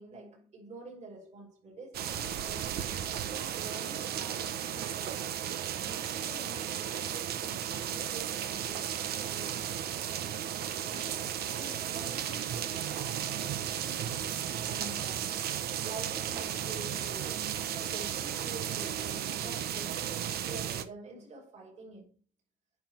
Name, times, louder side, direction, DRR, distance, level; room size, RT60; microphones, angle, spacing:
voice 1, 0.0-2.8 3.1-5.3 5.8-10.0 10.8-13.9 14.5-15.5 15.8-22.1, right 3 dB, 45° right, 5.0 m, -48 dB
sound 1, 1.9-20.8, right 10 dB, 70° right, 1.2 m, -34 dB
9.5 x 6.0 x 4.7 m
cardioid pair, 110°, 17 cm